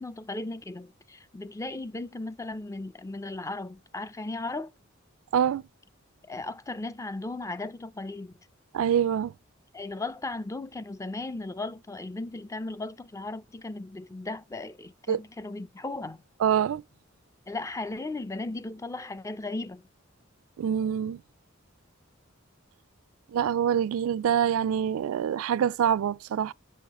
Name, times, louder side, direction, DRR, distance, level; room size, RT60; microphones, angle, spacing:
voice 1, 0.0-4.7 6.3-8.3 9.7-16.2 17.5-19.8, left 2 dB, 15° left, 0.4 m, -36 dB
voice 2, 5.3-5.6 8.7-9.3 15.1-15.2 16.4-16.8 20.6-21.2 23.3-26.5, right 9 dB, 80° right, 0.3 m, -25 dB
6.4 x 6.4 x 3.0 m
head